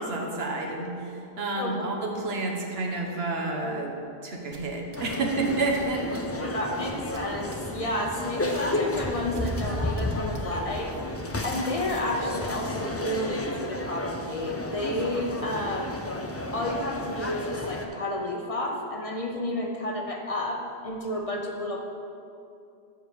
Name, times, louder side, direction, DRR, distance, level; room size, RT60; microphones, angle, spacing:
voice 1, 0.0-3.9 4.2-6.5, right 2 dB, 80° right, 1 dB, 1.3 m, -30 dB
sound 1, 4.5-10.9, right 2 dB, 30° right, 0.7 m, -47 dB
sound 2, 5.0-17.9, left 1 dB, 20° left, 0.4 m, -32 dB
voice 2, 6.5-10.9 11.4-16.0 16.5-21.8, left 1 dB, 40° left, 1 dB, 0.8 m, -31 dB
7.9 x 4.7 x 6.8 m, 2.6 s
omnidirectional pair, 1.0 m